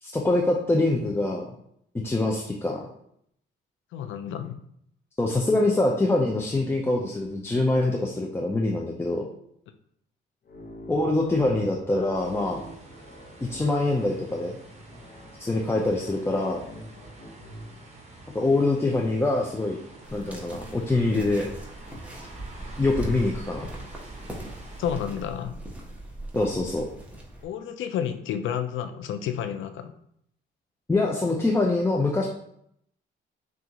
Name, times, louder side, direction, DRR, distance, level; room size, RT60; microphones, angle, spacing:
voice 1, 0.0-1.5 2.0-2.9 5.2-9.2 10.9-12.6 13.5-14.6 15.4-16.7 18.3-19.8 20.1-21.5 22.8-23.7 26.4-26.8 30.9-32.3, left 2 dB, 10° left, -1 dB, 0.5 m, -24 dB
voice 2, 3.9-4.6 24.8-25.6 27.4-29.9, left 9 dB, 75° left, 9 dB, 0.5 m, -30 dB
sound 1, 10.4-17.7, equal, 45° left, 0.9 m, -46 dB
sound 2, 12.1-25.0, right 2 dB, 35° right, 1.1 m, -48 dB
sound 3, 20.0-27.4, right 1 dB, 5° right, 1.0 m, -39 dB
6.1 x 2.5 x 2.9 m, 0.71 s
cardioid pair, 90°, 20 cm